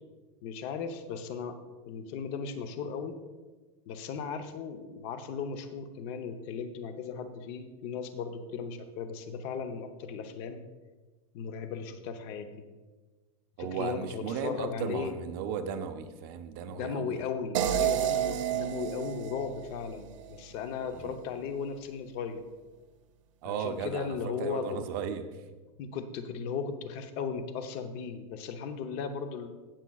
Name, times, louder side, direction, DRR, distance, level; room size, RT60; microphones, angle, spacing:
voice 1, 0.4-1.6 1.9-3.2 3.9-10.6 11.3-12.5 13.6-15.1 16.7-22.5 23.4-24.8 25.8-29.5, left 6 dB, 35° left, 8 dB, 0.7 m, -36 dB
voice 2, 13.6-17.2 20.9-21.2 23.4-25.2, right 7 dB, 40° right, 8 dB, 0.6 m, -36 dB
sound 1, 17.5-20.6, right 10 dB, 80° right, 0.9 m, -31 dB
16.5 x 7.3 x 2.3 m, 1.3 s
supercardioid pair, 170°, 16 cm